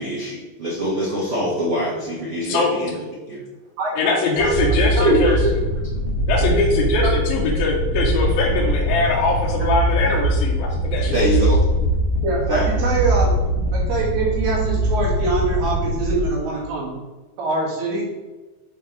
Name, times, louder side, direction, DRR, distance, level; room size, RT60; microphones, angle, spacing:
voice 1, 0.0-2.9 3.3-3.4 4.9-5.5 11.1-11.6 12.5-12.7, equal, 65° right, -7 dB, 1.3 m, -23 dB
voice 2, 2.5-3.1 3.9-5.4 6.3-11.3, left 3 dB, 80° left, -3 dB, 2.5 m, -22 dB
voice 3, 3.8-4.1 4.4-4.6 5.0-5.2 7.0-7.2 10.8-10.9 12.2-13.4 13.7-17.0 17.4-18.0, right 3 dB, 80° right, -5 dB, 3.7 m, -24 dB
sound 1, 4.4-16.2, right 1 dB, 60° left, 1.3 m, -22 dB
Keyboard (musical), 6.5-9.5, right 2 dB, 40° left, 0.7 m, -34 dB
9.0 x 4.4 x 3.0 m, 1.2 s
omnidirectional pair, 4.4 m